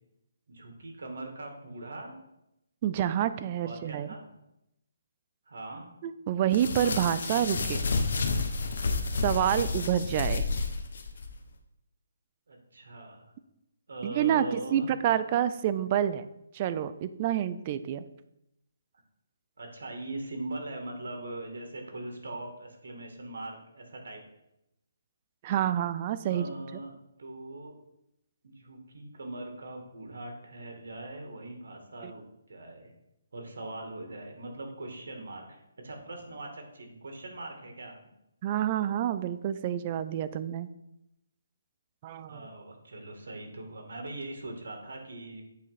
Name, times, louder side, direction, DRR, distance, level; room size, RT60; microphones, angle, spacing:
voice 1, 0.5-2.2 3.6-4.2 5.4-5.9 9.4-9.7 12.5-13.3 13.9-14.9 19.6-24.2 26.3-26.9 27.2-27.7 28.4-32.9 33.3-38.0 42.3-45.4, right 2 dB, 70° right, 3 dB, 1.8 m, -41 dB
voice 2, 2.8-4.1 6.0-7.8 9.2-10.5 14.0-16.3 16.5-18.0 25.4-26.4 32.0-32.1 38.4-40.7 42.0-42.5, right 10 dB, 25° right, 13 dB, 0.3 m, -28 dB
sound 1, 6.5-11.3, left 4 dB, 60° left, 0.9 m, -30 dB
8.3 x 3.0 x 5.7 m, 0.84 s
hypercardioid pair, 165°, 0 cm